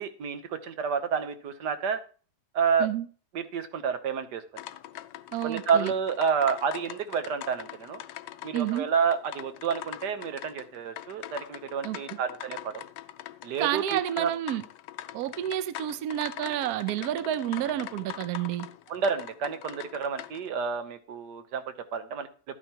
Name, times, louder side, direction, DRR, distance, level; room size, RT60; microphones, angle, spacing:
voice 1, 0.0-2.0 2.5-2.9 3.3-4.4 5.4-8.0 8.4-12.8 13.4-14.3 18.9-22.3, right 6 dB, 90° right, 1.6 m, -29 dB
sound 1, 4.6-20.5, left 13 dB, 85° left, 1.2 m, -43 dB
voice 2, 5.3-5.9 8.5-8.8 11.8-12.0 13.6-14.6 15.1-18.7, right 12 dB, 70° right, 1.0 m, -30 dB
12.5 x 9.1 x 2.9 m
omnidirectional pair, 1.8 m